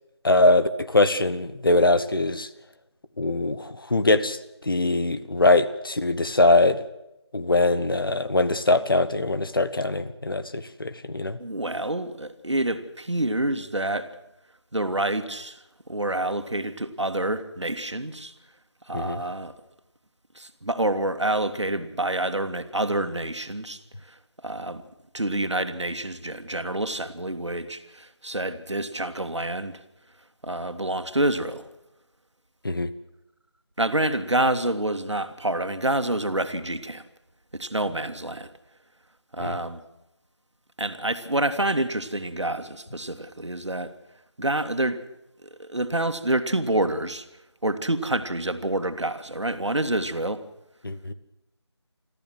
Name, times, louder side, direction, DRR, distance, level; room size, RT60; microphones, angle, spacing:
voice 1, 0.2-2.5 3.2-6.8 7.3-11.4 18.9-19.2 32.6-32.9 39.4-39.6 50.8-51.1, left 2 dB, 50° left, 12 dB, 1.3 m, -22 dB
voice 2, 11.4-14.1 14.7-15.6 15.9-18.3 18.9-19.5 20.4-23.8 24.4-24.8 25.1-29.8 30.4-31.7 33.8-37.0 37.5-38.5 39.3-39.8 40.8-43.9 44.4-45.0 45.4-47.3 47.6-50.4, right 1 dB, 90° right, 8 dB, 2.1 m, -27 dB
24.5 x 14.0 x 7.7 m, 0.89 s
figure-of-eight pair, 170°, 15 cm